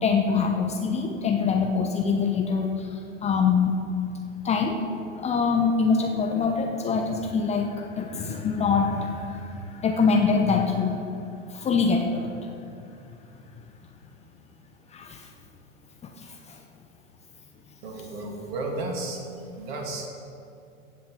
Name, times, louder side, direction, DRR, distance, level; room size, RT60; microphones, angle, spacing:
voice 1, 0.0-3.7 4.4-4.8 5.1-11.0 11.5-12.3 14.9-15.3 16.2-16.6, left 5 dB, 15° left, 3 dB, 0.8 m, -24 dB
voice 2, 17.8-19.2 19.6-20.1, right 2 dB, 50° right, 1 dB, 2.6 m, -33 dB
16.0 x 5.9 x 7.4 m, 2.7 s
figure-of-eight pair, 95°, 39 cm